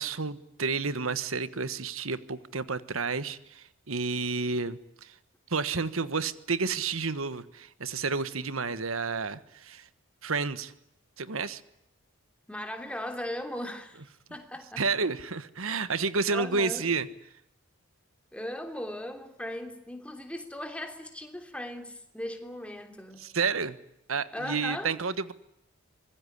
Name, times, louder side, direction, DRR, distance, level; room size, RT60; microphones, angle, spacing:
voice 1, 0.0-5.1 5.5-9.9 10.2-10.7 11.2-11.6 14.8-17.1 23.2-23.8 24.1-25.3, right 4 dB, 80° right, 14 dB, 1.4 m, -30 dB
voice 2, 12.5-14.0 14.3-14.8 16.3-16.9 18.3-23.3 24.3-24.9, left 1 dB, 5° left, 6 dB, 3.2 m, -38 dB
25.5 x 21.5 x 10.0 m, 0.81 s
head